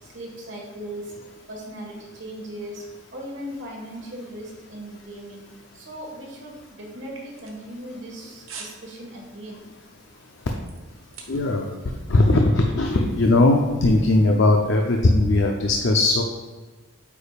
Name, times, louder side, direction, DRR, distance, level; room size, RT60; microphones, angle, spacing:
voice 1, 0.0-1.1 1.5-9.7, right 1 dB, 60° right, -1 dB, 1.6 m, -38 dB
sound 1, 7.1-8.1 8.5-8.8 9.2-9.4 9.9-11.7 11.9-12.0, right 5 dB, 85° right, 1.1 m, -43 dB
voice 2, 11.3-16.2, left 2 dB, 60° left, 1 dB, 0.5 m, -19 dB
8.3 x 5.2 x 2.4 m, 1.3 s
head